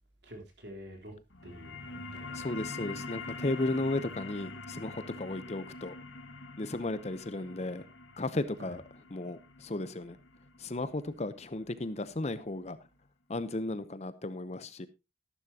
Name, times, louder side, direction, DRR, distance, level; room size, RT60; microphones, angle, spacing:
voice 1, 0.2-1.2 1.4-2.5 8.6-8.8, equal, 60° right, 3.6 m, -48 dB
sound 1, 1.3-12.4, left 3 dB, 80° left, 1.6 m, -45 dB
voice 2, 2.3-5.9 6.6-7.8 8.2-8.8 9.1-10.2 10.6-12.8 13.3-14.9, left 2 dB, 35° left, 0.7 m, -35 dB
13.0 x 11.5 x 2.8 m
head